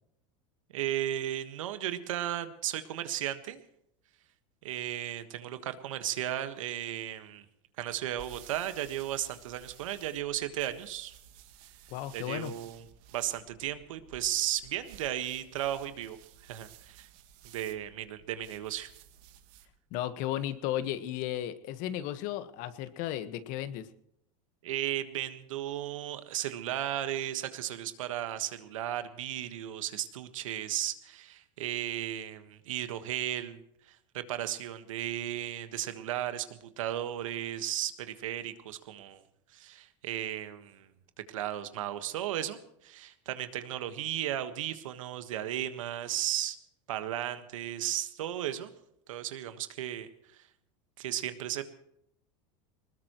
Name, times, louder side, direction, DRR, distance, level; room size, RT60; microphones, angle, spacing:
voice 1, 0.7-3.6 4.6-7.4 7.8-11.1 12.1-12.8 13.1-16.2 16.4-17.1 17.5-18.9 24.6-33.6 33.9-39.2 39.5-40.9 41.3-46.6 46.9-48.7 49.1-50.4 51.0-51.6, right 12 dB, 90° right, 10 dB, 1.5 m, -35 dB
sound 1, 7.9-19.8, right 10 dB, 60° right, 1.8 m, -55 dB
voice 2, 11.9-12.5 19.9-23.9, left 12 dB, 55° left, 12 dB, 1.4 m, -34 dB
20.0 x 20.0 x 3.1 m, 0.78 s
supercardioid pair, 125°, 16 cm